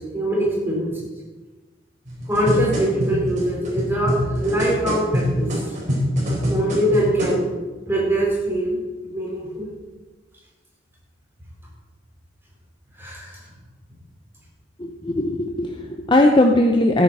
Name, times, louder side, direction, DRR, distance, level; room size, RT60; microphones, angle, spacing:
voice 1, 0.1-0.9 2.3-5.6 6.5-7.4 7.9-8.8 9.0-9.7 13.0-13.4, right 1 dB, 10° right, -5 dB, 4.5 m, -23 dB
sound 1, 2.1-7.4 8.1-8.2, equal, 40° right, 4.5 m, -24 dB
voice 2, 14.8-17.0, left 1 dB, 25° left, 2 dB, 0.7 m, -18 dB
14.5 x 9.1 x 4.2 m, 1.2 s
head